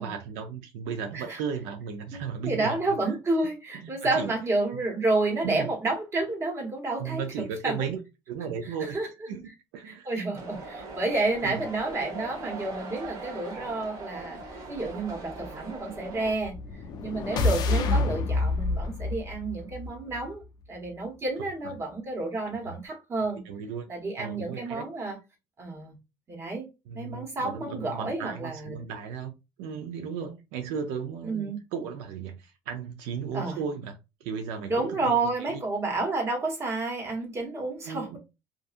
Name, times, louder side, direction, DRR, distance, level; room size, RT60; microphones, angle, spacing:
voice 1, 0.0-2.8 3.0-3.2 3.8-4.4 5.4-5.7 7.0-8.0 8.3-9.0 9.3-10.1 11.4-11.6 17.3-17.5 22.6-22.8 23.4-23.8 24.2-24.8 26.9-29.3 29.6-35.2 35.5-35.6 37.8-38.2, right 6 dB, 85° right, 0.4 m, -35 dB
voice 2, 2.1-7.3 7.6-7.9 8.8-9.1 9.8-14.4 14.7-16.5 17.0-20.4 20.7-23.4 23.9-25.2 25.6-26.0 26.3-26.7 26.9-28.9 31.2-31.6 33.3-33.6 34.7-38.2, right 2 dB, 30° right, 1.2 m, -30 dB
sound 1, 10.3-16.3, right 2 dB, 50° right, 1.0 m, -40 dB
sound 2, 16.2-20.4, left 3 dB, 50° left, 0.4 m, -28 dB
2.6 x 2.5 x 2.4 m
cardioid pair, 115°, 9 cm